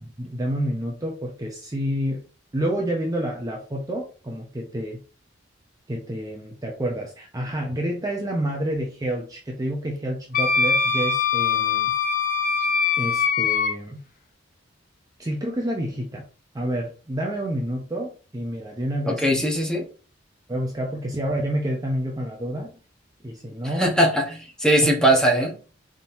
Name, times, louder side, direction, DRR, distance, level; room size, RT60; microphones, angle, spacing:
voice 1, 0.0-2.2 2.5-5.0 5.9-11.9 13.0-14.0 15.2-16.3 16.5-19.5 20.5-22.7 23.2-24.0 24.8-24.9, right 1 dB, 20° right, 0 dB, 0.6 m, -29 dB
Wind instrument woodwind instrument, 10.3-13.7, left 5 dB, 45° left, 0.6 m, -22 dB
voice 2, 19.1-19.9 23.8-25.5, right 1 dB, 5° left, 0 dB, 1.0 m, -20 dB
4.2 x 3.6 x 2.6 m, 0.36 s
head